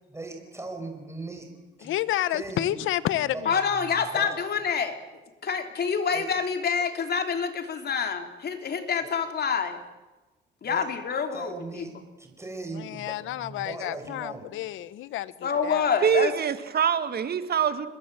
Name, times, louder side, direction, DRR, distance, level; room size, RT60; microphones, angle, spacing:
voice 1, 0.1-1.5 1.8-2.0 2.3-2.8 3.3-4.4 6.1-6.3 9.0-9.2 10.6-10.9 11.3-14.5, right 3 dB, 15° right, 4 dB, 5.4 m, -39 dB
voice 2, 1.8-3.6 12.7-15.9, left 13 dB, 85° left, 16 dB, 1.0 m, -30 dB
voice 3, 3.4-5.0 5.4-9.8 10.6-11.8 15.4-16.3, left 6 dB, 55° left, 6 dB, 3.3 m, -27 dB
voice 4, 16.0-17.9, right 7 dB, 50° right, 10 dB, 1.9 m, -24 dB
26.5 x 21.0 x 7.7 m, 1.1 s
cardioid pair, 90°, 20 cm